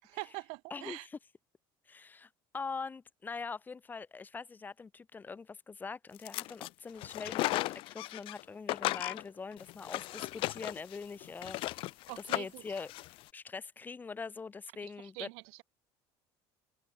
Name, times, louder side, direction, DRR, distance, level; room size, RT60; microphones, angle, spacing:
voice 1, 0.0-1.1 12.1-12.6 14.8-15.6, right 32 dB, 80° right, 2.2 m, -44 dB
voice 2, 0.7-1.2 1.9-7.6 7.9-11.9 12.3-12.9 13.3-15.3, left 4 dB, 20° left, 1.0 m, -43 dB
sound 1, 6.2-6.7 7.0-8.4 8.7-13.2, left 18 dB, 60° left, 0.9 m, -36 dB
open air
cardioid pair, 135°, 10 cm